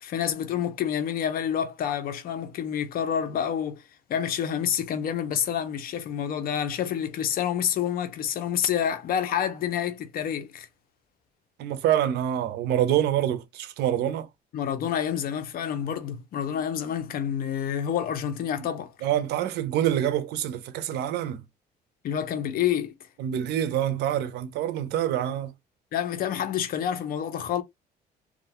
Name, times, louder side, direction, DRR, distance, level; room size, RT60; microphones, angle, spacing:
voice 1, 0.0-3.8 4.1-10.7 14.5-18.9 22.0-22.9 25.9-27.6, left 9 dB, 60° left, 0.6 m, -28 dB
voice 2, 11.6-14.3 19.0-21.4 23.2-25.5, right 11 dB, 75° right, 0.5 m, -26 dB
2.4 x 2.2 x 2.9 m
cardioid pair, 110°, 17 cm